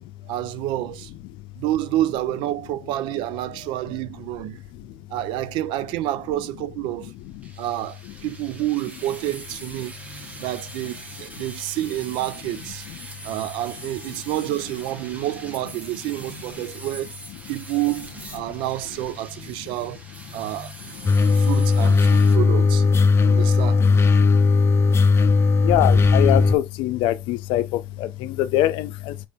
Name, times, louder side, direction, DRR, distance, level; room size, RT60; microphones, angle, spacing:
voice 1, 0.3-1.1 1.6-4.6 5.1-7.1 7.6-9.9 10.4-12.9 13.2-17.1 17.5-20.0 20.3-21.0 21.3-22.8 23.2-23.8, right 15 dB, 70° right, 0.4 m, -28 dB
sound 1, 7.4-22.4, right 2 dB, 15° right, 1.0 m, -42 dB
sound 2, 21.1-26.6, left 4 dB, 30° left, 0.6 m, -17 dB
voice 2, 25.6-27.6 28.2-29.1, left 14 dB, 75° left, 0.6 m, -22 dB
4.7 x 2.7 x 3.5 m
supercardioid pair, 105°, 9 cm